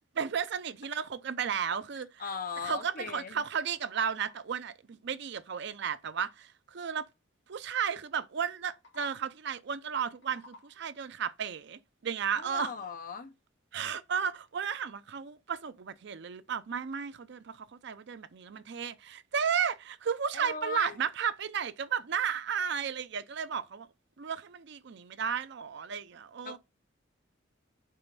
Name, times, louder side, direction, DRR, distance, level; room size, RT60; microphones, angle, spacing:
voice 1, 0.2-2.2 2.6-7.0 7.5-12.7 13.7-23.9 24.2-26.6, right 7 dB, 60° right, 0.5 m, -34 dB
voice 2, 2.2-3.4 12.3-13.3 20.3-21.0 26.4-26.6, left 5 dB, 45° left, 0.8 m, -38 dB
sound 1, 2.3-3.1 3.5-4.6 8.6-9.5 9.9-11.0, left 2 dB, 65° left, 1.8 m, -57 dB
5.6 x 4.0 x 5.3 m
head